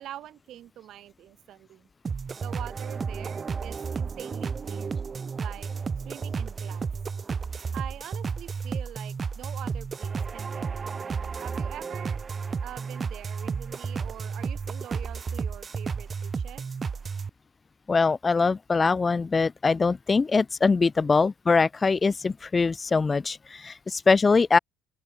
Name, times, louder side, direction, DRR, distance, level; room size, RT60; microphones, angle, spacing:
voice 1, 0.0-1.9 2.4-5.0 5.4-5.7 6.1-6.9 7.7-10.9 11.4-12.2 12.6-16.6 21.0-21.1, right 12 dB, 55° right, 6.2 m, -44 dB
sound 1, 2.0-17.3, right 5 dB, 35° right, 2.9 m, -32 dB
voice 2, 17.9-24.6, left 4 dB, 25° left, 1.7 m, -23 dB
open air
figure-of-eight pair, 55°, 0 cm